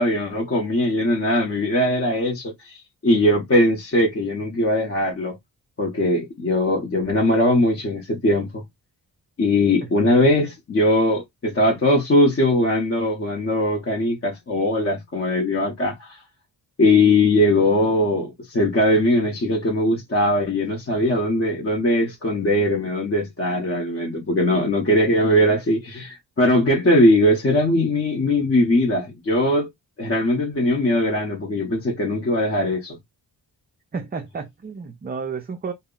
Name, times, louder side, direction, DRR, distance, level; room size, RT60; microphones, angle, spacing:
voice 1, 0.0-5.4 5.8-8.6 9.4-16.2 16.8-29.7 30.0-33.0, left 1 dB, 35° left, 0.7 m, -20 dB
voice 2, 33.9-35.7, right 5 dB, 25° right, 0.3 m, -31 dB
2.1 x 2.0 x 3.6 m
wide cardioid pair, 90°, 43 cm